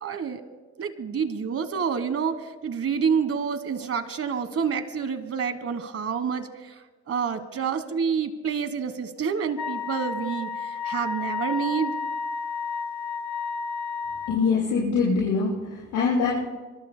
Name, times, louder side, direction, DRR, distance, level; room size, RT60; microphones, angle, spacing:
voice 1, 0.0-0.4 0.8-12.0, right 6 dB, 50° right, 11 dB, 1.4 m, -28 dB
Wind instrument woodwind instrument, 9.6-14.4, left 5 dB, 70° left, 1.1 m, -31 dB
voice 2, 14.3-16.5, left 4 dB, 90° left, -8 dB, 6.7 m, -24 dB
25.5 x 22.5 x 2.2 m, 1.3 s
cardioid pair, 90°, 30 cm